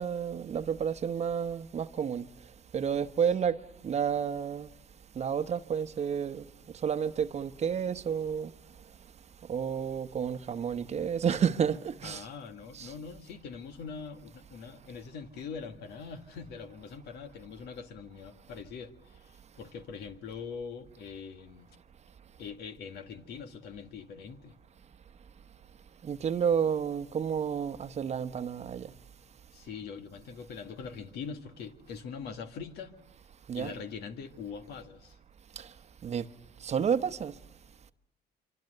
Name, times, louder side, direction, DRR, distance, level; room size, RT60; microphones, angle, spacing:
voice 1, 0.0-2.3 2.7-4.7 5.1-6.5 6.8-8.5 9.5-12.3 12.7-12.9 26.0-28.9 33.5-33.7 35.6-35.7 36.0-36.3 36.6-37.3, right 7 dB, 40° right, 1.0 m, -30 dB
voice 2, 12.0-21.8 22.4-24.5 29.5-33.0 33.5-35.2, left 6 dB, 75° left, 2.0 m, -43 dB
25.5 x 24.5 x 6.7 m
cardioid pair, 110°, 17 cm